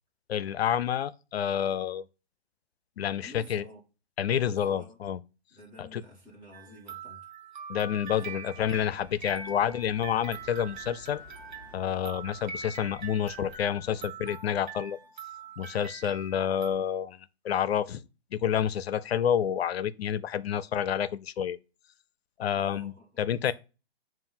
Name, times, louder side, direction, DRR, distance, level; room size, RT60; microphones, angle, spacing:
voice 1, 0.3-2.1 3.0-3.6 4.2-5.2 5.8-6.0 7.7-11.2 11.7-15.0 15.6-18.0 18.3-21.6 22.4-22.9 23.2-23.5, left 9 dB, 70° left, 0.6 m, -29 dB
voice 2, 3.2-3.8 4.3-5.0 5.5-7.3 8.1-8.3 22.5-23.5, equal, 15° right, 1.5 m, -51 dB
sound 1, 6.5-16.7, right 5 dB, 45° right, 0.9 m, -43 dB
sound 2, 8.5-14.1, left 2 dB, 20° left, 0.7 m, -52 dB
7.6 x 2.6 x 5.5 m
hypercardioid pair, 170°, 32 cm